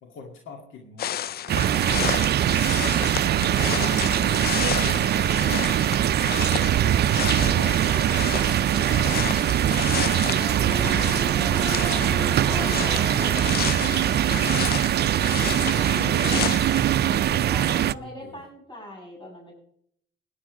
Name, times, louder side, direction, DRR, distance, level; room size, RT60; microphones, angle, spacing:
voice 1, 0.0-1.4 1.7-14.7 15.3-18.4, left 4 dB, 85° left, 3 dB, 2.1 m, -43 dB
sound 1, 1.0-16.8, left 10 dB, 50° left, 0.4 m, -32 dB
sound 2, 1.5-17.9, right 11 dB, 55° right, 0.5 m, -22 dB
voice 2, 3.3-4.6 15.6-15.8 17.0-19.5, left 1 dB, 25° left, -2 dB, 6.6 m, -42 dB
sound 3, 7.4-10.2 10.4-14.0, right 1 dB, 5° left, 2.6 m, -36 dB
17.5 x 10.5 x 5.0 m, 0.69 s
cardioid pair, 90°, 20 cm